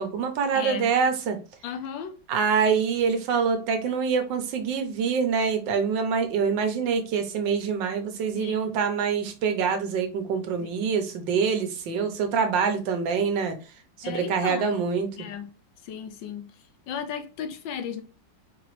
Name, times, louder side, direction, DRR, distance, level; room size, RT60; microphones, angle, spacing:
voice 1, 0.0-1.4 2.3-13.6 14.1-15.1, right 6 dB, 75° right, 1.4 m, -25 dB
voice 2, 0.5-0.9 1.6-2.1 8.3-8.7 10.6-10.8 14.0-14.7 15.2-15.5 15.8-18.0, left 7 dB, 80° left, 1.4 m, -35 dB
4.6 x 2.9 x 3.0 m
omnidirectional pair, 2.1 m